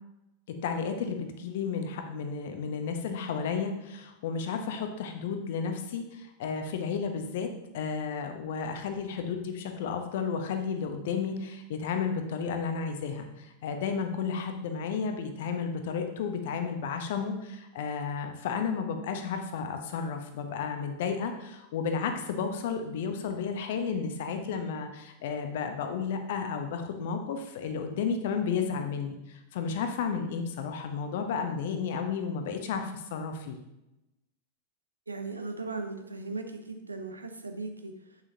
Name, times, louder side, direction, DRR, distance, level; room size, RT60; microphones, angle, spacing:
voice 1, 0.6-29.2 29.5-33.6, left 6 dB, 55° left, 6 dB, 0.9 m, -32 dB
voice 2, 35.1-37.9, right 3 dB, 80° right, 6 dB, 0.7 m, -37 dB
7.5 x 6.4 x 2.8 m, 0.92 s
figure-of-eight pair, 90°, 0 cm